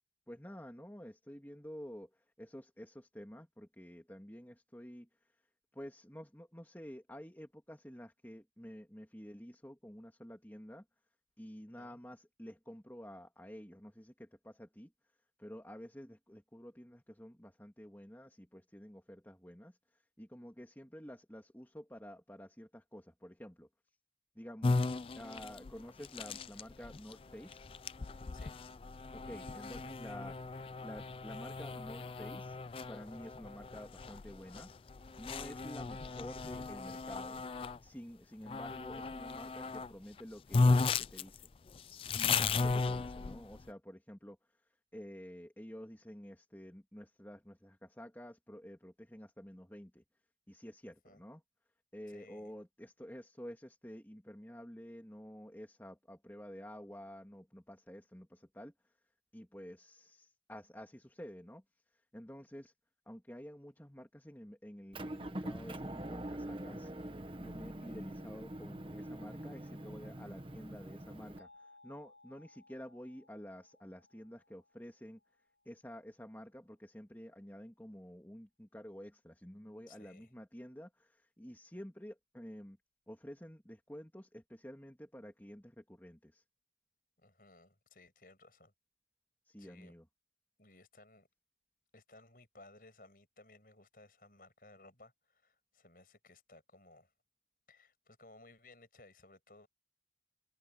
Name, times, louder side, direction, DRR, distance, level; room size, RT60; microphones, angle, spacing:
voice 1, 0.3-5.4 5.7-10.8 11.4-14.9 15.4-23.7 24.3-24.8 25.2-27.6 29.1-30.4 30.8-32.6 32.9-34.7 35.2-37.4 37.8-41.5 42.2-50.0 50.5-51.4 51.9-58.9 59.3-61.6 61.9-62.7 63.1-66.9 67.4-75.2 75.6-82.8 83.1-86.4 89.4-90.0, equal, 10° left, 2.7 m, -50 dB
sound 1, 24.6-37.8 38.5-39.9 40.2-40.3 40.5-43.6, left 4 dB, 30° left, 0.3 m, -35 dB
voice 2, 52.1-52.5 79.9-80.3 87.2-88.7 89.6-89.9 90.6-91.3 91.9-97.1 97.7-99.7, left 2 dB, 55° left, 6.1 m, -60 dB
Motor vehicle (road) / Engine, 64.9-71.4, right 1 dB, 30° right, 1.3 m, -44 dB
sound 2, 71.4-76.1, left 2 dB, 80° right, 2.0 m, -64 dB
head